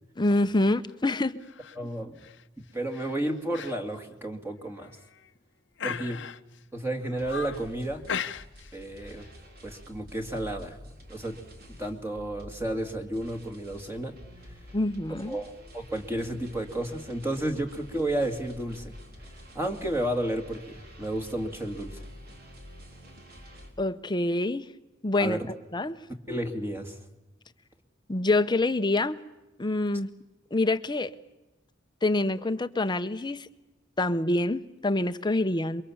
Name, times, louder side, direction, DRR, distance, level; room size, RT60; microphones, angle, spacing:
voice 1, 0.2-1.4 14.7-15.4 23.8-24.7 25.0-25.4 25.7-26.0 28.1-29.2 29.6-30.1 30.5-31.1 32.0-33.5 34.0-35.8, left 2 dB, 25° left, 11 dB, 0.8 m, -26 dB
sound 1, 1.4-1.8 2.2-2.4 2.9-3.1 3.5-3.8 4.1-4.2 4.8-5.3 5.8-6.6 7.0-7.7 8.1-8.8 9.0-9.3, left 6 dB, 65° left, 0.9 m, -37 dB
voice 2, 1.8-2.2 2.6-4.9 5.8-6.2 6.7-8.0 8.7-9.2 9.6-10.8 11.1-11.4 11.8-14.2 15.3-18.9 19.5-22.0 25.2-25.5 26.3-27.0, right 1 dB, 15° right, 3 dB, 2.2 m, -32 dB
sound 2, 7.2-23.7, equal, 55° right, 4.3 m, -48 dB
28.5 x 23.5 x 7.2 m, 0.99 s
head